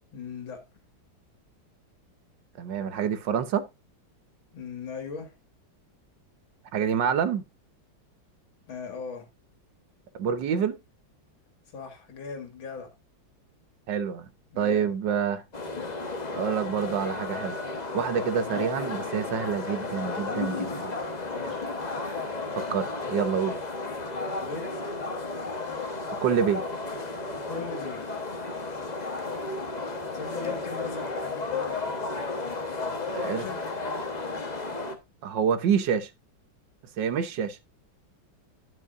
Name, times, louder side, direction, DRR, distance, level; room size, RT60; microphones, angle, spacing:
voice 1, 0.1-0.6 4.5-5.3 8.7-9.3 11.7-12.9 14.5-15.0 21.3-21.7 24.4-24.6 27.3-28.0 29.8-32.2 33.2-33.6, left 4 dB, 85° left, 2.8 m, -39 dB
voice 2, 2.6-3.7 6.7-7.4 10.2-10.8 13.9-14.3 14.6-15.4 16.3-17.6 17.9-20.9 22.6-23.6 26.2-26.6 33.1-33.5 35.2-36.1 37.0-37.6, right 7 dB, 70° right, 1.6 m, -27 dB
sound 1, 15.5-34.9, left 3 dB, 25° left, 1.0 m, -33 dB
11.0 x 7.5 x 2.5 m
omnidirectional pair, 2.1 m